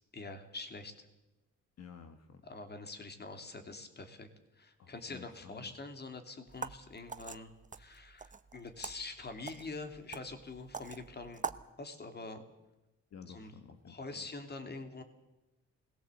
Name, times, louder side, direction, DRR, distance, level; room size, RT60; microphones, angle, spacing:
voice 1, 0.1-1.1 2.4-4.3 4.5-11.4 11.8-12.4 13.3-13.5 13.9-15.0, left 3 dB, 35° left, 7 dB, 3.1 m, -45 dB
voice 2, 1.8-2.4 4.8-5.7 13.1-14.3, left 6 dB, 60° left, 7 dB, 1.7 m, -52 dB
sound 1, 6.5-11.7, right 5 dB, 25° right, 1.0 m, -45 dB
20.5 x 17.0 x 8.1 m, 1.0 s
cardioid pair, 90°, 30 cm